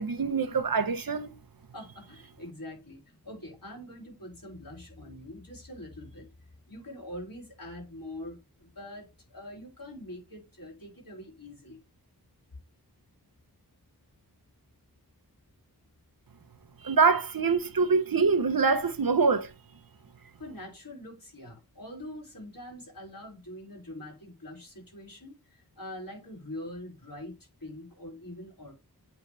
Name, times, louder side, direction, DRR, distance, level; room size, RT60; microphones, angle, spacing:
voice 1, 0.0-1.3 16.8-19.5, right 4 dB, 65° right, 0.9 m, -24 dB
voice 2, 1.7-6.3 6.7-11.8 20.4-28.7, left 1 dB, 60° left, 3.9 m, -44 dB
8.5 x 4.0 x 3.2 m
wide cardioid pair, 60°, 38 cm